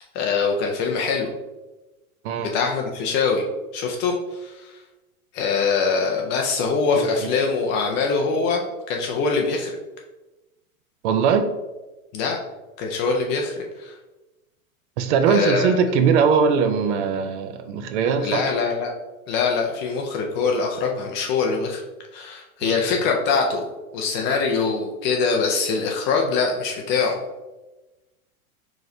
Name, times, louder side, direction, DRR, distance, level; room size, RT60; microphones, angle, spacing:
voice 1, 0.1-1.3 2.4-3.4 3.7-4.8 5.3-9.7 12.1-12.4 12.8-14.0 15.3-15.8 18.2-18.9 19.3-21.8 22.1-23.6 23.9-27.1, left 4 dB, 30° left, 1 dB, 0.4 m, -23 dB
voice 2, 6.9-7.3 11.0-11.5 15.0-18.4 22.6-22.9, right 6 dB, 55° right, 8 dB, 0.6 m, -21 dB
4.8 x 3.1 x 2.6 m, 1.1 s
hypercardioid pair, 125°, 43 cm